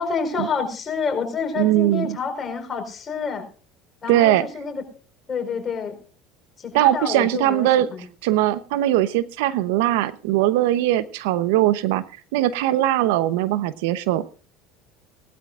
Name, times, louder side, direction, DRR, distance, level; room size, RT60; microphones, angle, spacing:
voice 1, 0.0-3.4 4.0-4.8 5.3-6.0 6.6-8.0, left 5 dB, 30° left, 4 dB, 4.5 m, -28 dB
voice 2, 1.6-2.2 4.1-4.5 6.7-7.9 8.2-12.0 12.3-14.2, right 14 dB, 75° right, 16 dB, 0.8 m, -20 dB
19.0 x 12.5 x 2.5 m, 0.39 s
supercardioid pair, 90°, 0 cm